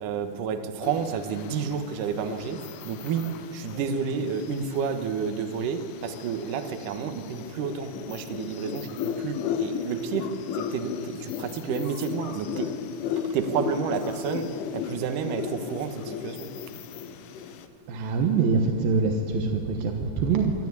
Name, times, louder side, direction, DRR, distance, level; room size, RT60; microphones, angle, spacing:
voice 1, 0.0-3.3 3.5-10.3 10.5-12.7 13.2-16.5, right 6 dB, 85° right, 7 dB, 1.8 m, -30 dB
sound 1, 0.8-17.7, left 8 dB, 85° left, 3.4 m, -35 dB
voice 2, 17.9-20.5, right 4 dB, 70° right, 3 dB, 2.4 m, -24 dB
24.0 x 13.0 x 9.5 m, 2.5 s
omnidirectional pair, 5.7 m